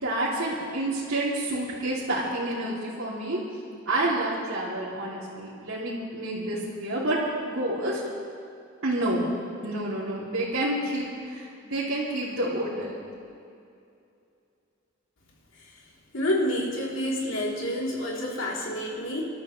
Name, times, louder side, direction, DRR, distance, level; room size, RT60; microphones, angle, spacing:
voice 1, 0.0-3.4 3.9-7.2 7.4-8.0 8.8-9.2 9.6-11.0 11.3-13.0, right 1 dB, 80° right, -10 dB, 3.1 m, -29 dB
voice 2, 16.1-19.3, left 1 dB, 70° left, -3 dB, 3.5 m, -28 dB
28.0 x 13.0 x 3.3 m, 2.6 s
head